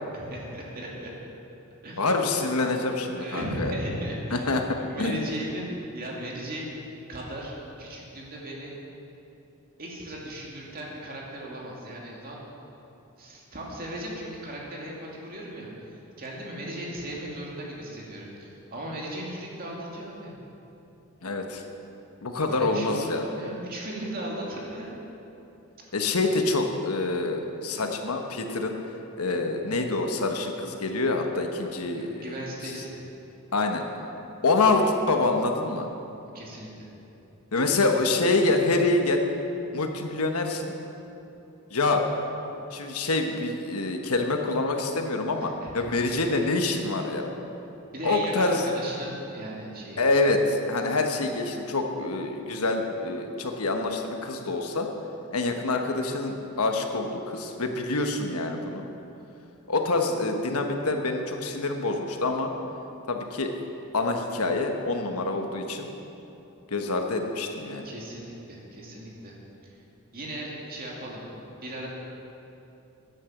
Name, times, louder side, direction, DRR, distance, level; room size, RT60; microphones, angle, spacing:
voice 1, 0.1-1.1 1.8-2.2 2.5-2.9 3.1-5.7 5.9-6.7 7.1-7.5 7.8-8.8 9.8-12.5 13.2-20.3 22.5-25.0 32.0-33.0 36.3-36.9 37.6-37.9 45.4-45.8 47.9-50.0 67.8-69.4 69.6-69.7 70.1-71.2 71.6-71.9, right 1 dB, 40° right, -3 dB, 2.3 m, -37 dB
voice 2, 2.0-3.7 4.3-5.3 21.2-21.6 22.2-23.3 25.9-28.8 29.2-32.3 33.5-33.8 34.4-35.9 37.5-39.2 39.7-40.7 41.7-42.1 42.7-47.3 48.0-48.6 50.0-54.9 55.3-58.9 59.7-62.5 63.1-63.5 63.9-65.9 66.7-67.9, left 3 dB, 80° left, 4 dB, 1.2 m, -26 dB
10.0 x 9.8 x 7.2 m, 2.9 s
head